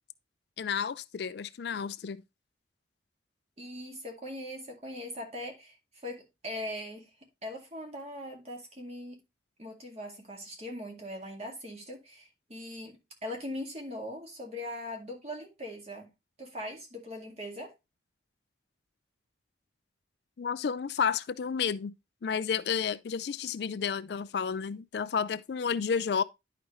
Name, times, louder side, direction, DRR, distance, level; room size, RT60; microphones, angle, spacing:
voice 1, 0.6-2.2 20.4-21.9 22.2-26.2, left 6 dB, 60° left, 0.4 m, -31 dB
voice 2, 3.6-7.1 7.4-9.2 9.6-16.1 16.4-17.7, left 1 dB, 35° right, 2.0 m, -40 dB
10.5 x 5.0 x 3.1 m
head